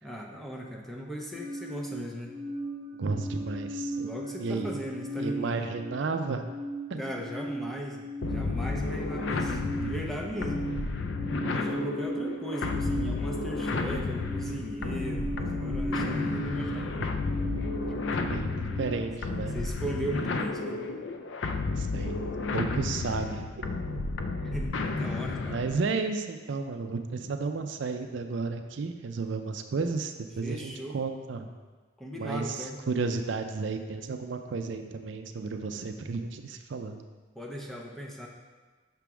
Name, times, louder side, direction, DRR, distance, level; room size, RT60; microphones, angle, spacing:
voice 1, 0.0-2.4 4.0-5.7 7.0-10.6 11.4-17.1 17.9-18.2 19.5-20.9 24.4-25.6 30.4-31.0 32.0-32.8 37.4-38.3, equal, ahead, -1 dB, 0.6 m, -38 dB
sound 1, 1.3-18.9, right 1 dB, 35° left, 2.1 m, -37 dB
voice 2, 2.9-4.1 4.4-4.9 5.2-6.5 6.9-7.1 18.3-19.6 21.7-23.7 25.5-31.5 32.2-37.0, right 4 dB, 65° right, 6 dB, 0.4 m, -33 dB
sound 2, 8.2-25.8, left 3 dB, 65° left, 0.4 m, -32 dB
6.0 x 3.4 x 5.9 m, 1.4 s
head